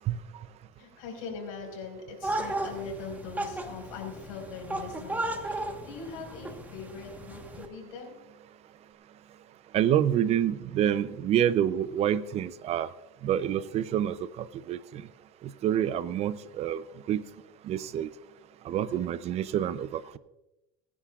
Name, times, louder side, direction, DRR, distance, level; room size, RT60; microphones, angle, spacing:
voice 1, 0.7-8.2 17.8-17.9, left 5 dB, 90° left, 1 dB, 5.0 m, -42 dB
sound 1, 2.2-7.7, right 2 dB, 10° right, 1.3 m, -35 dB
voice 2, 9.7-12.9 13.2-15.1 15.4-17.2 17.6-18.1 18.6-20.2, right 10 dB, 40° right, 16 dB, 0.6 m, -28 dB
24.5 x 10.0 x 2.4 m, 0.97 s
supercardioid pair, 130°, 17 cm